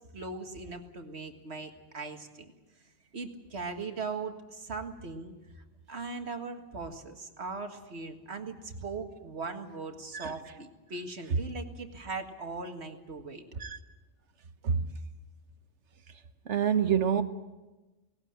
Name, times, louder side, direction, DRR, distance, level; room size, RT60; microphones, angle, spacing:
voice 1, 0.0-2.5 3.1-13.4, right 4 dB, 70° right, 5 dB, 2.0 m, -39 dB
voice 2, 16.5-17.2, right 7 dB, 85° right, 10 dB, 1.4 m, -27 dB
18.5 x 18.5 x 8.8 m, 1.1 s
omnidirectional pair, 1.2 m